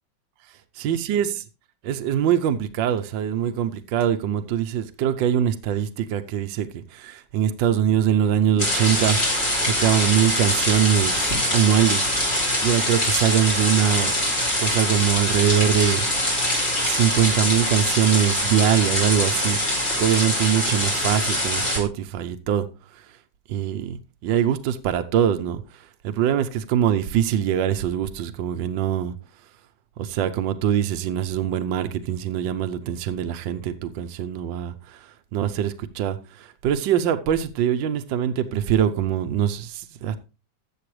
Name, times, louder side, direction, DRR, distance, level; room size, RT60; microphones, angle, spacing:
voice 1, 0.8-1.3 1.8-12.1 12.6-14.1 14.6-16.4 16.8-19.6 20.0-22.7 23.5-24.0 24.2-25.6 26.0-29.1 30.0-35.0 35.3-40.2, right 9 dB, 75° right, 1.5 m, -23 dB
sound 1, 8.6-21.8, left 1 dB, 30° left, 3.1 m, -23 dB
13.5 x 7.7 x 3.2 m
omnidirectional pair, 2.1 m